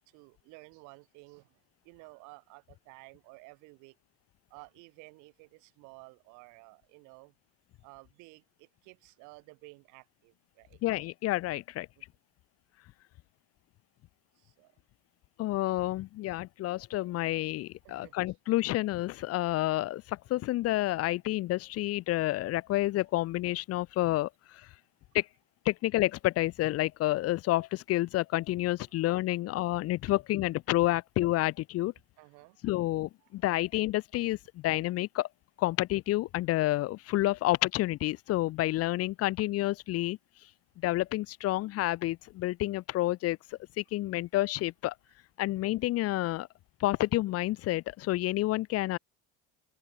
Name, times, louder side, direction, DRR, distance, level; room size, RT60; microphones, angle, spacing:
voice 1, 0.0-1.6 1.8-4.0 4.5-7.3 7.8-10.8 12.0-12.1 14.4-14.7 17.8-18.2 30.1-30.2 32.2-32.6 33.2-33.3, right 28 dB, 75° right, 5.2 m, -54 dB
voice 2, 10.8-11.9 15.4-24.7 25.1-25.3 25.6-31.9 32.6-35.3 35.6-40.2 40.8-43.4 43.8-44.9 45.4-46.5 46.8-49.0, left 16 dB, 50° left, 0.8 m, -29 dB
open air
supercardioid pair, 100°, 30 cm